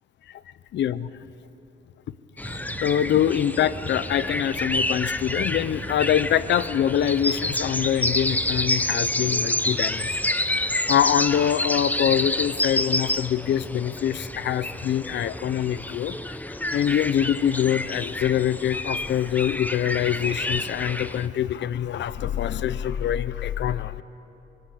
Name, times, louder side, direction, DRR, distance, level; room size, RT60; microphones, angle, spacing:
voice 1, 0.7-1.1 2.5-10.2 10.5-24.0, left 10 dB, 65° left, 16 dB, 0.7 m, -25 dB
sound 1, 2.4-21.3, left 1 dB, 10° left, 0.8 m, -28 dB
sound 2, 2.4-7.9, right 7 dB, 40° right, 1.0 m, -44 dB
24.0 x 22.0 x 8.6 m, 2.9 s
cardioid pair, 90°, 20 cm